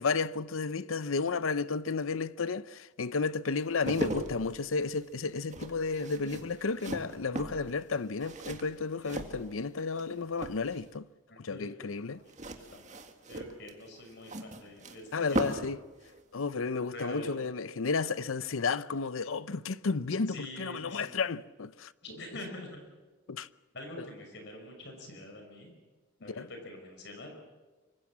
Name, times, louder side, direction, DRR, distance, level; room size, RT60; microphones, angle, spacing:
voice 1, 0.0-11.1 11.4-12.2 15.1-15.8 16.3-21.9 23.3-23.5 24.0-24.1 26.3-26.5, left 4 dB, 85° left, 0.7 m, -32 dB
sound 1, 3.6-10.0 10.3-11.0 12.3-15.8 16.0-16.2, right 1 dB, 35° right, 2.0 m, -38 dB
voice 2, 11.3-11.8 12.0-12.2 12.7-12.8 13.3-15.6 16.9-17.5 20.3-21.2 22.0-22.8 23.7-25.7 26.2-27.3, left 1 dB, 55° left, 5.7 m, -45 dB
24.5 x 24.5 x 7.4 m
head